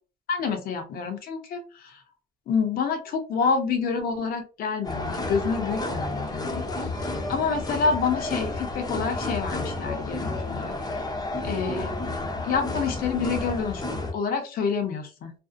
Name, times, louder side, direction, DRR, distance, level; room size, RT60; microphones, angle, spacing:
voice 1, 0.3-2.0 2.5-6.9 7.3-11.0 11.4-11.9 12.4-13.8 14.1-15.3, left 5 dB, 60° left, 6 dB, 0.7 m, -28 dB
sound 1, 4.8-14.1, left 2 dB, 20° left, 0.6 m, -31 dB
2.6 x 2.0 x 2.5 m, 0.35 s
cardioid pair, 110°, 17 cm